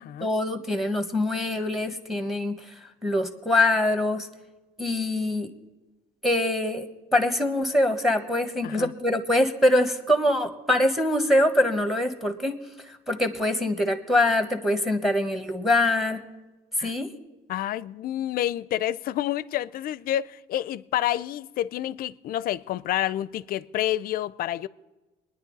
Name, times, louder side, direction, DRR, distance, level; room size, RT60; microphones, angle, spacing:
voice 1, 0.2-4.3 4.8-5.5 6.2-6.9 7.1-16.2 16.8-17.1, left 1 dB, ahead, 1.3 m, -24 dB
voice 2, 17.5-24.7, left 12 dB, 60° left, 0.4 m, -29 dB
22.5 x 10.0 x 4.0 m
cardioid pair, 110°, 17 cm